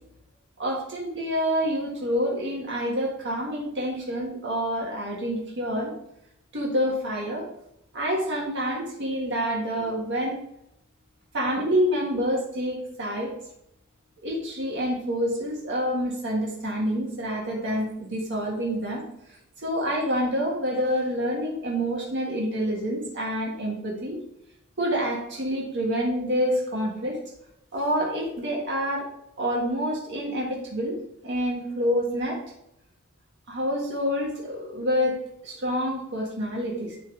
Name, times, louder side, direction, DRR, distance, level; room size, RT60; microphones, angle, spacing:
voice 1, 0.6-5.9 6.5-7.5 7.9-10.4 11.3-13.3 14.2-19.0 19.6-24.2 24.8-27.2 27.7-29.1 29.4-31.0 31.2-32.4 33.5-37.0, equal, 60° right, -3 dB, 1.6 m, -27 dB
10.5 x 3.7 x 3.8 m, 0.80 s
head